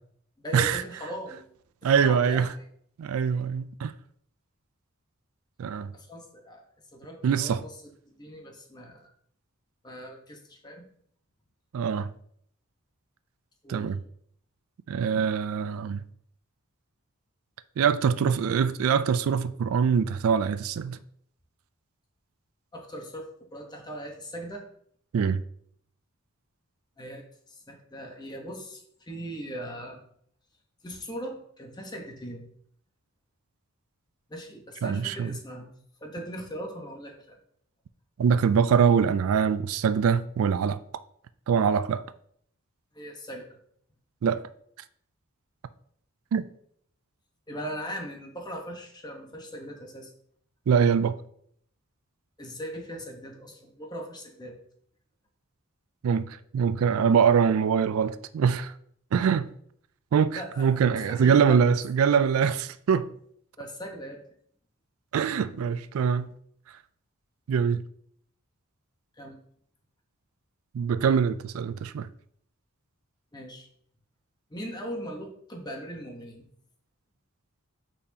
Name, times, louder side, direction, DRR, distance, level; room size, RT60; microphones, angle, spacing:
voice 1, 0.4-1.4 1.8-2.5 5.9-6.6 6.9-9.1 9.8-10.8 13.6-13.9 22.7-23.3 23.5-24.6 27.0-30.0 30.8-32.5 34.3-35.7 36.0-37.4 42.9-43.5 47.5-50.1 52.4-54.6 60.3-60.8 61.1-61.6 63.6-64.2 69.2-69.4 73.3-73.7 74.5-76.4, equal, 20° left, 1.0 m, -39 dB
voice 2, 1.8-2.5 3.0-3.9 5.6-5.9 7.2-7.6 11.7-12.1 13.7-14.0 14.9-16.0 17.8-21.0 25.1-25.4 34.8-35.3 38.2-40.8 41.5-42.0 44.2-44.4 46.3-46.5 50.7-51.2 56.0-58.7 59.1-59.5 60.1-63.1 65.1-66.3 67.5-67.8 70.7-72.1, right 7 dB, 75° right, 0.3 m, -23 dB
8.5 x 4.2 x 2.8 m
head